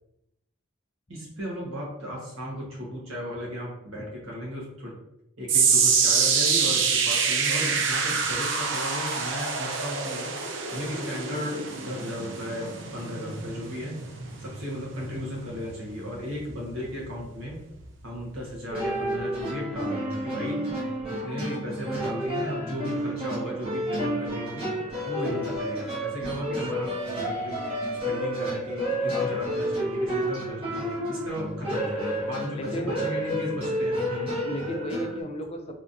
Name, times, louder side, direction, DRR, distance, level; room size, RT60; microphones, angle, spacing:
voice 1, 1.1-4.9 5.4-10.3 10.7-14.0 14.4-17.6 18.0-20.6 21.1-24.7 25.0-27.6 28.0-34.4, equal, 85° right, -3 dB, 1.4 m, -35 dB
sound 1, 5.5-17.8 18.1-18.5 19.1-19.2, right 5 dB, 70° right, 0.5 m, -26 dB
sound 2, 18.7-35.2, equal, 30° right, 1.3 m, -30 dB
voice 2, 29.0-29.4 32.5-33.0 34.4-35.7, equal, 30° left, 4 dB, 0.5 m, -34 dB
3.9 x 3.4 x 2.7 m, 0.82 s
head